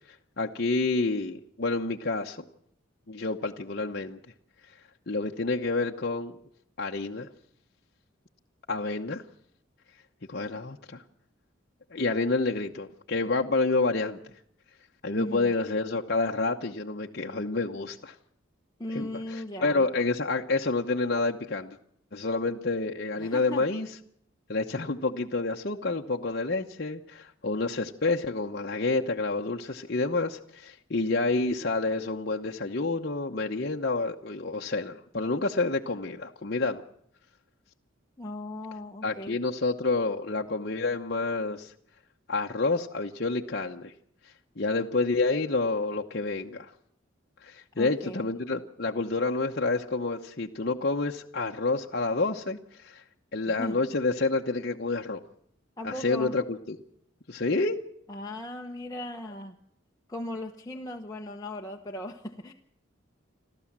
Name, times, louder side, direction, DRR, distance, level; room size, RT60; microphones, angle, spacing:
voice 1, 0.4-2.4 3.1-4.2 5.1-6.3 6.8-7.3 8.7-9.2 10.3-11.0 11.9-14.2 15.0-18.1 18.9-21.8 22.1-23.9 24.5-36.8 39.0-41.7 42.3-43.9 44.6-46.7 47.4-53.0 53.3-55.2 55.8-56.8 57.3-57.8, left 3 dB, 50° left, 1 dB, 0.9 m, -28 dB
voice 2, 15.2-15.5 18.8-19.8 22.5-22.6 23.2-23.6 38.2-39.4 47.8-48.3 53.5-53.8 55.8-56.4 58.1-59.6 60.1-62.5, left 1 dB, 20° left, 0 dB, 1.1 m, -37 dB
28.5 x 13.0 x 7.4 m, 0.71 s
head